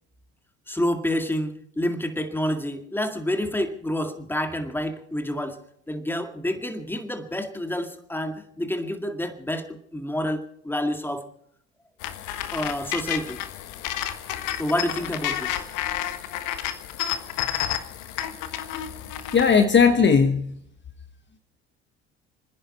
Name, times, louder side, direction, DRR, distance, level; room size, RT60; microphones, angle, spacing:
voice 1, 0.7-11.3 12.5-13.4 14.6-15.6, left 1 dB, 5° left, 2.1 m, -28 dB
sound 1, 12.0-19.6, left 11 dB, 65° left, 1.4 m, -31 dB
voice 2, 19.3-20.6, left 6 dB, 35° left, 1.3 m, -18 dB
30.0 x 10.5 x 4.3 m
hypercardioid pair, 70°, 33 cm